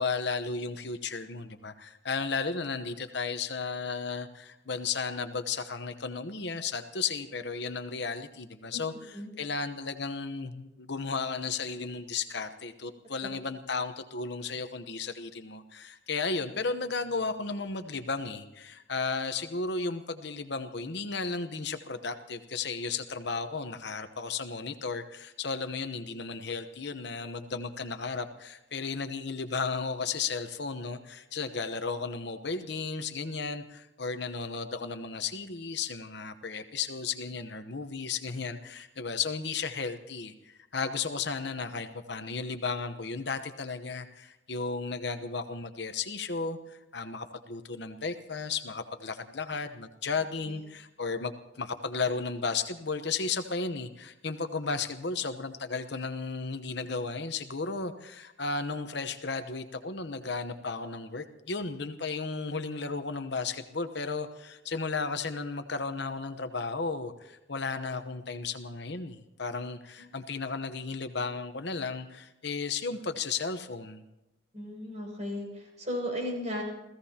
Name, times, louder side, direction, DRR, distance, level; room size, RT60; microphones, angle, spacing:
voice 1, 0.0-74.0, left 4 dB, 60° left, 8 dB, 1.0 m, -34 dB
voice 2, 74.5-76.6, equal, 35° right, 1 dB, 6.6 m, -35 dB
29.5 x 16.0 x 2.9 m, 0.94 s
head